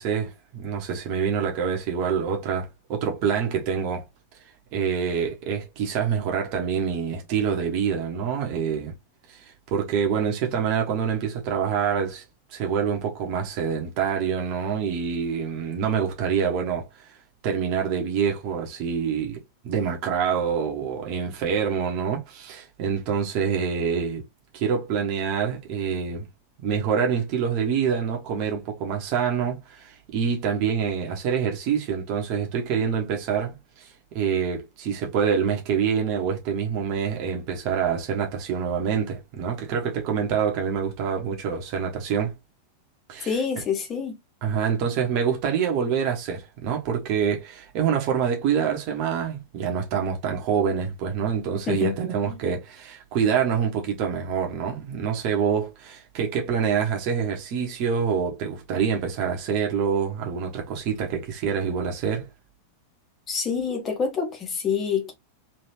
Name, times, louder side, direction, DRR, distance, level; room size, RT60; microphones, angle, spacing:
voice 1, 0.0-4.0 4.7-8.9 9.3-9.4 9.7-12.2 12.5-16.9 17.4-24.2 24.5-26.3 26.6-33.9 34.1-42.3 43.1-43.3 44.4-62.3, right 7 dB, 45° right, 1.4 m, -26 dB
voice 2, 43.3-44.2 51.7-51.9 52.2-52.4 63.3-65.1, left 6 dB, 25° left, 1.4 m, -27 dB
3.5 x 3.4 x 2.9 m
figure-of-eight pair, 90°, 0 cm